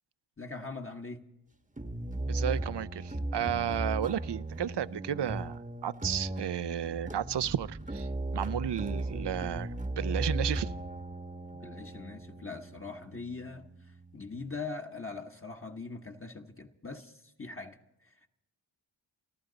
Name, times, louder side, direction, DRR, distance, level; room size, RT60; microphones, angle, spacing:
voice 1, 0.4-1.2 11.6-18.3, left 4 dB, 25° left, 1.2 m, -42 dB
sound 1, 1.8-14.6, right 2 dB, 15° right, 1.1 m, -37 dB
voice 2, 2.3-8.1 8.3-10.7, right 10 dB, 60° right, 0.6 m, -33 dB
29.5 x 12.0 x 3.9 m
cardioid pair, 55°, 48 cm